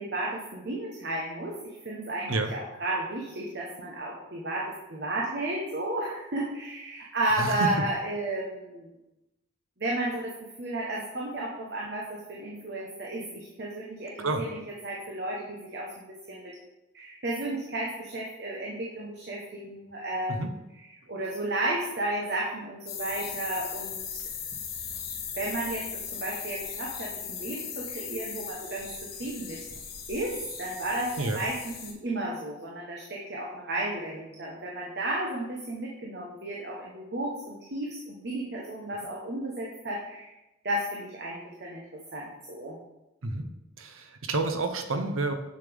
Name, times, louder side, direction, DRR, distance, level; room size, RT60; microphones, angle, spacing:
voice 1, 0.0-8.9 9.8-16.5 16.9-20.4 20.7-24.3 25.4-29.7 30.1-40.3 40.6-42.8, right 1 dB, 50° right, -3 dB, 1.0 m, -33 dB
voice 2, 7.4-7.7 14.2-14.4 20.3-20.5 31.2-31.4 43.2-43.4 43.8-45.3, right 2 dB, 85° right, 6 dB, 0.8 m, -29 dB
sound 1, 22.9-31.9, left 7 dB, 45° left, 1.0 m, -38 dB
7.0 x 6.7 x 3.5 m, 0.99 s
head